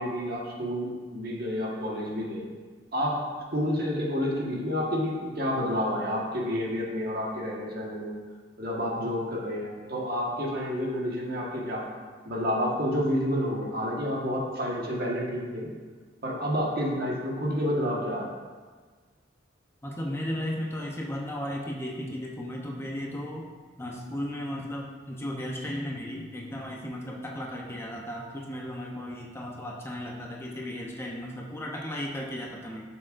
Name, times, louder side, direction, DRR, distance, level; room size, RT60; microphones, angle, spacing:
voice 1, 0.0-2.5 2.9-3.2 3.5-8.1 8.6-11.9 12.2-15.7 16.2-18.3, equal, 55° right, -3 dB, 1.6 m, -29 dB
voice 2, 19.8-32.8, left 1 dB, 15° left, -2 dB, 0.8 m, -35 dB
11.5 x 6.6 x 2.6 m, 1.5 s
head